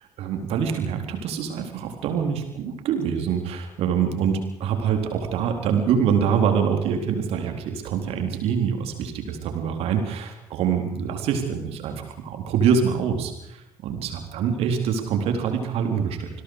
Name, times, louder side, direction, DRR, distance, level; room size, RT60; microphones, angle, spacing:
voice 1, 0.2-13.3 13.8-16.3, right 7 dB, 60° right, 5 dB, 4.0 m, -25 dB
26.5 x 21.5 x 5.0 m, 0.83 s
figure-of-eight pair, 50°, 12 cm